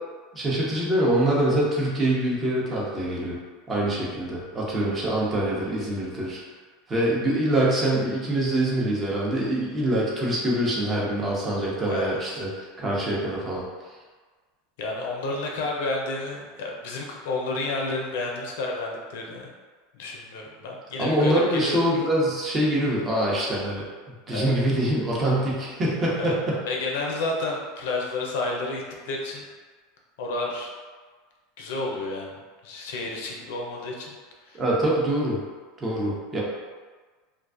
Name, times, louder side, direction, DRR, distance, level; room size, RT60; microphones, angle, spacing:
voice 1, 0.3-3.4 3.7-6.4 6.9-13.6 21.0-23.9 24.3-26.6 34.5-35.4 35.8-36.4, right 1 dB, 30° right, -5 dB, 0.7 m, -24 dB
voice 2, 11.9-12.4 14.8-19.5 19.9-21.8 24.3-24.5 26.2-26.4 26.7-29.4 30.2-30.7 31.6-32.3 32.6-34.1 34.5-34.6, left 2 dB, 75° left, -1 dB, 0.5 m, -30 dB
2.4 x 2.3 x 2.4 m, 1.4 s
hypercardioid pair, 100°, 0 cm